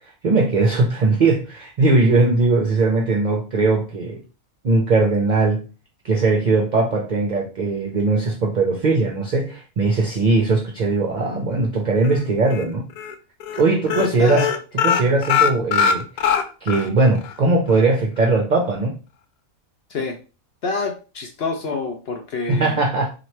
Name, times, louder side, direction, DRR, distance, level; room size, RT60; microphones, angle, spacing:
voice 1, 0.2-4.2 4.6-5.7 6.0-12.9 13.5-14.5 14.8-16.0 16.6-18.9 22.5-23.1, right 3 dB, 55° right, 1 dB, 0.5 m, -19 dB
sound 1, 12.0-12.6 13.0-13.1 13.4-13.6 13.9-16.9 17.2-17.3 17.7-17.8, left 8 dB, 80° left, 1.0 m, -21 dB
voice 2, 14.0-14.5 19.9-20.2 20.6-22.8, left 4 dB, 60° left, 4 dB, 0.6 m, -26 dB
3.0 x 2.6 x 4.2 m, 0.33 s
omnidirectional pair, 1.5 m